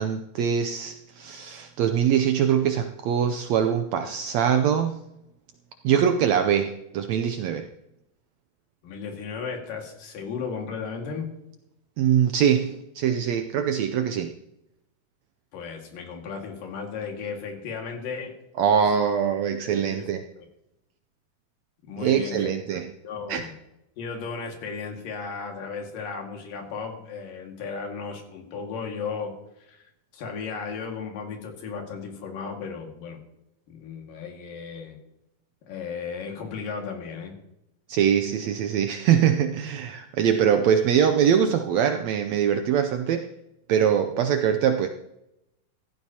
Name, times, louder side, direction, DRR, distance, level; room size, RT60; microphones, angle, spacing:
voice 1, 0.0-5.0 5.8-7.7 12.0-14.3 18.6-20.2 22.0-22.9 23.3-23.4 37.9-43.3 43.7-44.9, right 8 dB, 80° right, 7 dB, 1.6 m, -23 dB
voice 2, 8.8-11.3 15.5-18.3 18.8-18.9 19.9-20.1 20.4-20.5 21.9-23.5 24.0-29.3 29.6-33.2 33.7-35.0 35.7-37.3, left 5 dB, 90° left, 2 dB, 3.7 m, -35 dB
15.5 x 14.0 x 2.9 m, 0.85 s
omnidirectional pair, 3.8 m